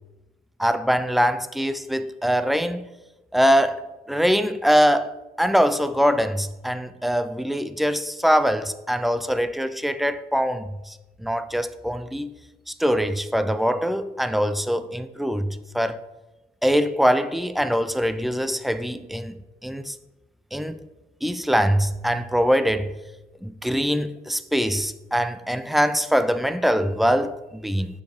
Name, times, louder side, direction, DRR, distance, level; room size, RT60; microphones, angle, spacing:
voice 1, 0.6-2.9 3.3-12.3 12.7-16.0 16.6-19.3 19.6-20.0 20.5-20.8 21.2-23.0 23.4-27.9, equal, ahead, 0.3 m, -23 dB
6.7 x 5.4 x 3.9 m
cardioid pair, 110°, 17 cm